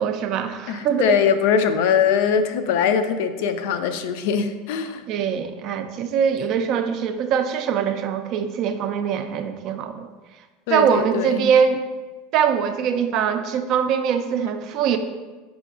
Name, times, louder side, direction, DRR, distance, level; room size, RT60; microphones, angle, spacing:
voice 1, 0.0-1.2 5.1-10.1 10.7-11.8 12.3-15.0, right 7 dB, 45° right, 8 dB, 0.3 m, -22 dB
voice 2, 0.7-5.0 10.7-11.5, left 7 dB, 70° left, 9 dB, 0.3 m, -21 dB
4.8 x 4.4 x 2.4 m, 1.3 s
supercardioid pair, 155°, 0 cm